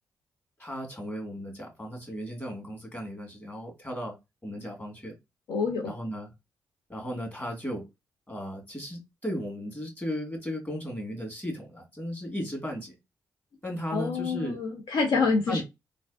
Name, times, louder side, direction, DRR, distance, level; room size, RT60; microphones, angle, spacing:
voice 1, 0.6-4.2 4.4-5.1 5.8-6.3 6.9-7.8 8.3-12.9 13.6-14.6 15.5-15.6, equal, 25° left, 1.8 m, -35 dB
voice 2, 5.5-5.9 13.9-15.6, left 4 dB, 70° left, 0.6 m, -27 dB
3.2 x 2.4 x 2.3 m
supercardioid pair, 45°, 8 cm